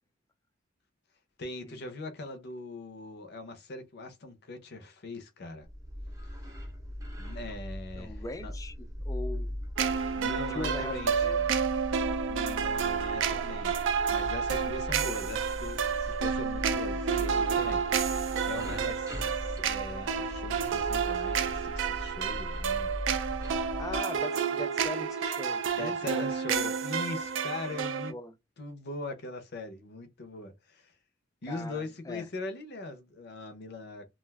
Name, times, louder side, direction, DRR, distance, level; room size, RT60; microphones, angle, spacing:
voice 1, 1.4-5.7 6.4-6.5 7.2-8.5 10.1-11.3 12.3-13.8 14.1-22.9 25.8-28.1 28.6-30.9 31.4-34.1, left 2 dB, 55° left, 0.6 m, -41 dB
sound 1, 5.6-24.0, equal, 15° right, 0.7 m, -39 dB
voice 2, 8.0-9.6 10.5-11.5 17.3-17.5 23.8-26.3 27.7-28.3 31.5-32.2, left 2 dB, 15° left, 0.4 m, -41 dB
sound 2, 9.8-28.1, right 6 dB, 65° right, 0.4 m, -30 dB
2.4 x 2.3 x 3.3 m
head